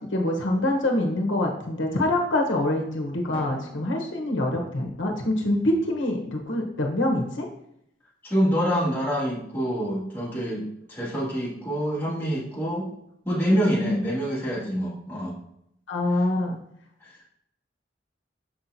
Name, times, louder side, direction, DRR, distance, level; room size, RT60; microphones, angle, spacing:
voice 1, 0.0-7.5 13.8-14.0 15.9-16.6, left 1 dB, 85° left, 1 dB, 1.0 m, -25 dB
Drum, 3.3-5.6, equal, 30° left, 1.3 m, -45 dB
voice 2, 8.2-12.9 13.2-15.4 17.0-17.1, equal, 10° left, -8 dB, 2.0 m, -26 dB
6.5 x 5.8 x 2.7 m, 0.75 s
head